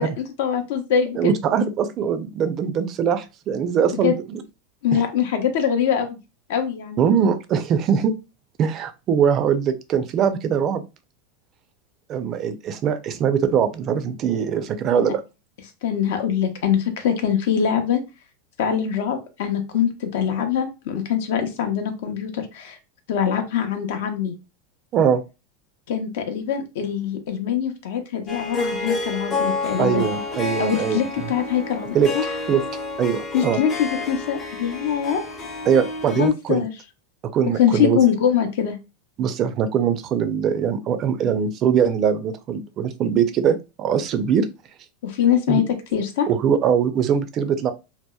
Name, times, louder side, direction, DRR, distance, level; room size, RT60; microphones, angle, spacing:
voice 1, 0.0-1.3 4.0-4.1 4.8-6.2 6.5-7.0 15.0-15.1 15.8-18.0 18.6-22.8 23.1-24.3 25.9-30.1 30.6-32.2 33.3-35.2 36.1-36.7 37.6-38.8 45.0-45.6 45.9-46.3, left 8 dB, 70° left, 6 dB, 0.5 m, -23 dB
voice 2, 1.2-4.4 4.9-5.0 7.0-8.1 8.6-10.8 12.1-15.2 24.9-25.2 29.8-31.3 31.9-32.1 32.5-32.6 33.0-33.6 35.7-36.7 37.3-38.0 39.2-44.5 45.5-45.6 46.3-47.7, right 7 dB, 35° right, 10 dB, 0.3 m, -21 dB
Harp, 28.3-36.3, left 3 dB, 25° left, 0.5 m, -29 dB
2.7 x 2.0 x 2.2 m, 0.27 s
supercardioid pair, 145°, 0 cm